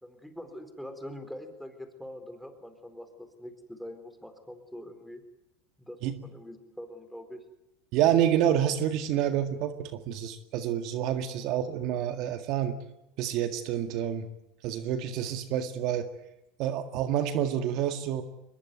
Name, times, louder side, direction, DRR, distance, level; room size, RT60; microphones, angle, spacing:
voice 1, 0.0-5.2 5.8-7.4, left 1 dB, ahead, 7 dB, 4.3 m, -44 dB
voice 2, 7.9-12.8 13.2-14.3 14.6-16.1 16.6-18.2, right 10 dB, 60° right, 9 dB, 1.8 m, -28 dB
22.5 x 21.5 x 9.3 m, 0.85 s
supercardioid pair, 105°, 0 cm